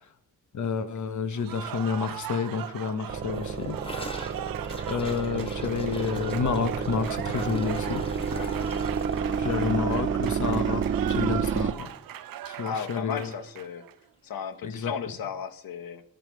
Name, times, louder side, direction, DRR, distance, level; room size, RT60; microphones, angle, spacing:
voice 1, 0.5-3.8 4.9-8.0 9.4-11.9 12.4-13.3 14.6-14.9, left 6 dB, 60° left, 11 dB, 1.1 m, -29 dB
Cheering / Applause, 1.4-14.0, right 12 dB, 90° right, 0.6 m, -39 dB
sound 1, 3.1-11.7, right 6 dB, 35° right, 0.7 m, -30 dB
Gurgling / Toilet flush, 3.3-11.6 11.8-12.0 12.3-12.7 13.0-13.1 13.4-13.5 14.4-14.5, left 1 dB, 15° left, 1.5 m, -44 dB
voice 2, 12.6-13.8 14.2-16.0, left 7 dB, 85° left, 11 dB, 1.1 m, -35 dB
13.5 x 7.5 x 4.7 m, 0.65 s
wide cardioid pair, 120°, 34 cm